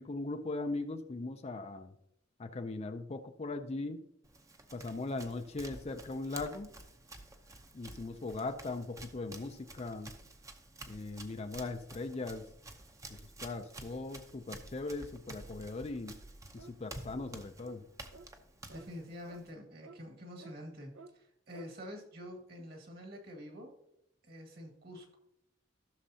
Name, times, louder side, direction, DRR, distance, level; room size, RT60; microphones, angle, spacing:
voice 1, 0.0-1.9 2.4-4.1 4.7-6.7 7.7-10.1 10.9-12.5 13.1-16.2 16.5-17.8, left 3 dB, 30° left, 8 dB, 0.4 m, -39 dB
Run, 4.2-19.5, right 2 dB, 15° right, 0.7 m, -51 dB
sound 1, 16.6-16.8 17.1-17.3 17.6-17.8 18.1-18.3 18.7-18.9 19.3-19.4 19.8-20.0 20.4-20.6 20.9-21.1 21.5-21.7, right 3 dB, 75° right, 0.6 m, -52 dB
voice 2, 18.7-23.7 24.2-25.2, equal, 50° right, 2 dB, 1.9 m, -47 dB
14.5 x 6.5 x 2.8 m, 0.77 s
head